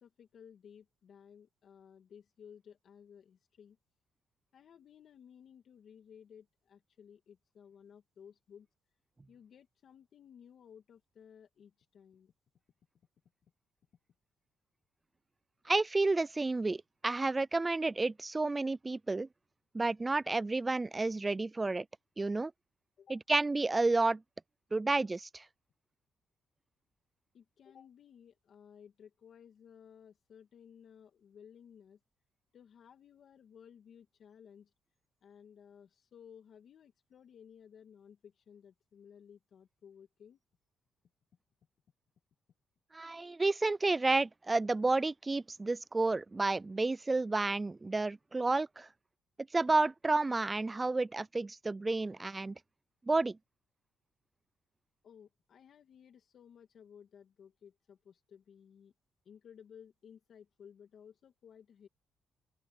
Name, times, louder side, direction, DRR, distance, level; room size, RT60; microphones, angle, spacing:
voice 1, 0.0-3.8 4.5-8.7 9.3-12.3 23.0-23.2 27.3-32.0 32.5-34.7 35.2-40.4 55.0-58.9 59.2-61.9, left 8 dB, 60° left, 2.1 m, -57 dB
voice 2, 15.7-19.3 19.7-21.9 22.2-22.5 23.1-24.2 24.7-25.4 42.9-48.9 49.5-52.6 53.1-53.4, right 3 dB, 20° right, 0.4 m, -31 dB
open air
cardioid pair, 90°, 0 cm